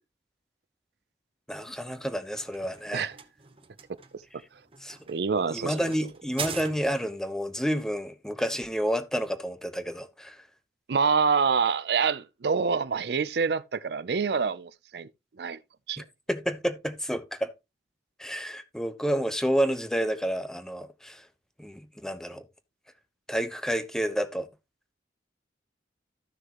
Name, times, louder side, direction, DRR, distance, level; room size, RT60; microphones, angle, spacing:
voice 1, 1.5-3.1 4.8-5.0 5.3-10.4 16.0-17.5 18.2-21.3 21.6-22.4 23.3-24.5, equal, 5° left, 0.9 m, -30 dB
sound 1, 2.1-7.2, right 6 dB, 30° right, 1.1 m, -42 dB
voice 2, 5.1-5.8 10.9-15.1 15.4-15.6 15.9-16.0, right 5 dB, 65° right, 0.5 m, -26 dB
14.0 x 6.5 x 2.9 m
head